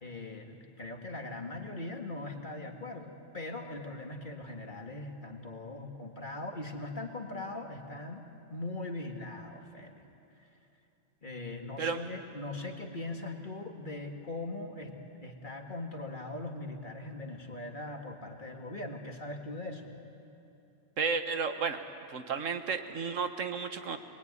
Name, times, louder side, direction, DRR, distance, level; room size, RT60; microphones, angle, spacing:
voice 1, 0.0-8.2 8.5-10.0 11.2-14.9 15.2-19.9, left 2 dB, 40° left, 2 dB, 2.1 m, -40 dB
voice 2, 21.0-21.8 22.1-24.0, right 5 dB, 75° right, 8 dB, 1.6 m, -32 dB
26.5 x 21.0 x 9.7 m, 2.8 s
omnidirectional pair, 1.3 m